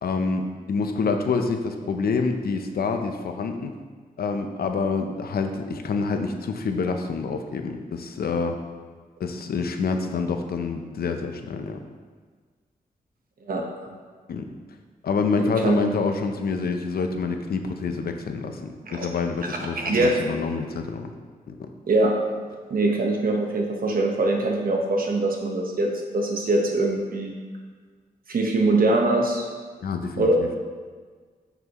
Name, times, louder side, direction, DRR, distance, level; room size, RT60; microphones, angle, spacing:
voice 1, 0.0-3.7 4.2-8.6 9.2-11.8 14.3-14.4 15.0-21.1 21.5-21.7 29.8-30.5, left 4 dB, 85° left, 6 dB, 0.7 m, -27 dB
voice 2, 15.4-15.8 18.9-19.1 19.4-20.2 21.9-22.1 22.7-27.3 28.3-29.5 30.2-30.4, right 2 dB, 70° right, 1 dB, 1.2 m, -23 dB
9.0 x 6.0 x 3.1 m, 1.5 s
wide cardioid pair, 95°, 15 cm